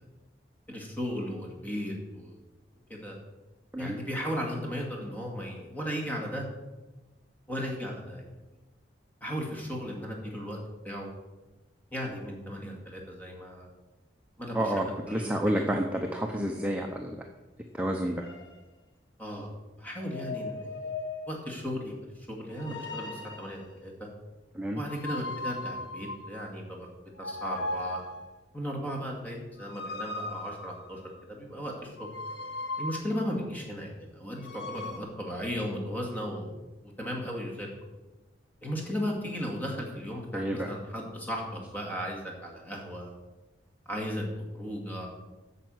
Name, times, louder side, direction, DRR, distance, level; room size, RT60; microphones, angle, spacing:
voice 1, 0.7-2.3 2.9-3.2 3.8-6.4 7.5-8.2 9.2-10.6 10.8-11.1 11.9-13.7 14.4-14.7 15.1-15.6 19.2-20.9 21.3-24.1 24.7-26.9 27.2-28.0 28.5-31.0 31.3-32.1 32.8-37.7 38.6-43.1 43.9-44.2 44.5-45.1, equal, 10° left, -1 dB, 2.2 m, -36 dB
voice 2, 14.5-17.2 17.8-18.2 24.6-24.8 40.3-40.7, right 1 dB, 5° right, 2 dB, 0.6 m, -30 dB
sound 1, 18.2-18.5 20.0-21.5 22.5-23.7 24.9-26.6 27.2-28.4 29.6-31.2 32.0-33.4 34.3-35.0, left 2 dB, 65° left, 1.3 m, -38 dB
9.2 x 6.7 x 7.8 m, 1.1 s
head